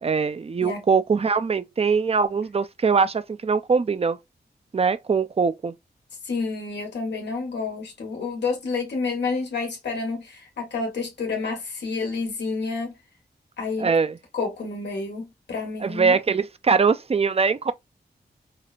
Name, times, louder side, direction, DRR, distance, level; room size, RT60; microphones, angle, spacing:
voice 1, 0.0-4.2 4.7-5.7 13.8-14.2 15.8-17.7, right 5 dB, 35° right, 0.5 m, -22 dB
voice 2, 6.2-12.9 13.6-13.9 14.3-16.2, left 4 dB, 85° left, 1.3 m, -29 dB
5.0 x 2.1 x 2.4 m
cardioid pair, 50°, 17 cm